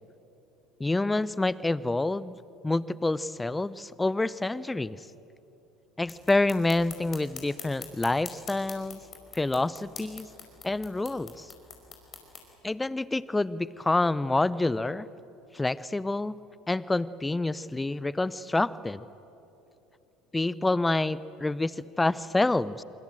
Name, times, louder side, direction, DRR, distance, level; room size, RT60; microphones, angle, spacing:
voice 1, 0.8-2.4 2.6-5.0 6.0-9.0 9.3-10.3 10.6-11.5 12.6-15.1 15.5-16.4 16.7-19.0 20.3-22.8, left 2 dB, 10° left, 19 dB, 0.7 m, -27 dB
sound 1, 6.0-12.5, left 5 dB, 35° left, 5.1 m, -46 dB
25.0 x 24.5 x 7.7 m, 3.0 s
figure-of-eight pair, 65°, 0 cm